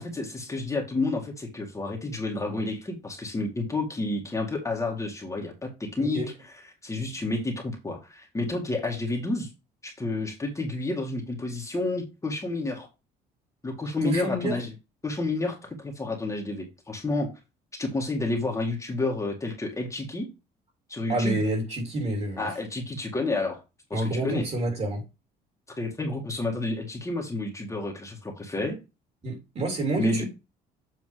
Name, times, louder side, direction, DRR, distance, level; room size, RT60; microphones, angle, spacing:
voice 1, 0.0-6.2 6.8-9.5 9.8-12.9 13.6-14.7 15.0-17.3 17.8-20.3 20.9-21.4 22.4-23.6 23.9-24.5 25.8-28.8 30.0-30.3, left 2 dB, 20° left, 2.0 m, -30 dB
voice 2, 6.0-6.3 14.0-14.6 21.1-22.5 23.9-25.0 29.2-30.3, right 1 dB, 40° right, 3.1 m, -28 dB
7.9 x 3.4 x 4.9 m
cardioid pair, 110°, 17 cm